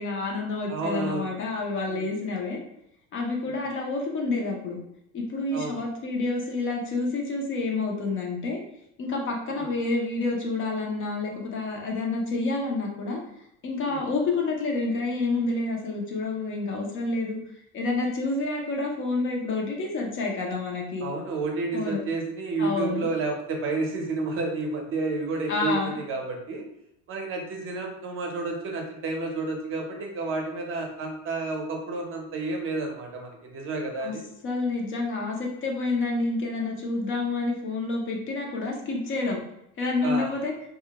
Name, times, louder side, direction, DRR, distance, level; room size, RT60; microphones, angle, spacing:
voice 1, 0.0-2.6 3.1-4.8 5.1-8.6 9.0-13.2 13.6-17.4 17.7-21.1 21.7-22.0 22.6-23.1 25.5-25.9 34.0-34.2 34.4-39.4 39.8-40.5, left 3 dB, 40° left, 0 dB, 0.6 m, -28 dB
voice 2, 0.7-1.3 1.9-2.1 3.4-3.6 5.5-5.8 9.5-9.7 13.8-14.0 21.0-26.6 27.1-34.2 40.0-40.3, right 3 dB, 40° right, 1 dB, 0.6 m, -30 dB
2.3 x 2.1 x 2.8 m, 0.80 s
cardioid pair, 130°, 32 cm